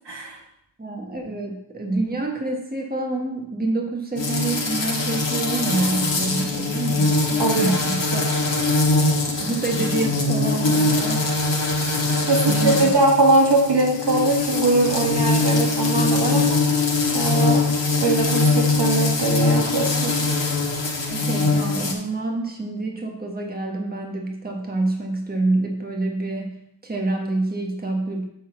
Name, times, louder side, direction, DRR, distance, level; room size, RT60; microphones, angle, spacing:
voice 1, 0.1-0.4 7.4-7.8 12.3-16.6 17.1-17.6 18.0-20.2, right 2 dB, 70° right, -1 dB, 1.8 m, -21 dB
voice 2, 0.8-8.5 9.3-11.4 12.5-12.9 21.1-28.2, right 2 dB, 20° right, 0 dB, 1.3 m, -27 dB
sound 1, 4.2-21.9, left 3 dB, 85° left, 1.5 m, -22 dB
8.4 x 4.0 x 5.9 m, 0.76 s
wide cardioid pair, 80°, 43 cm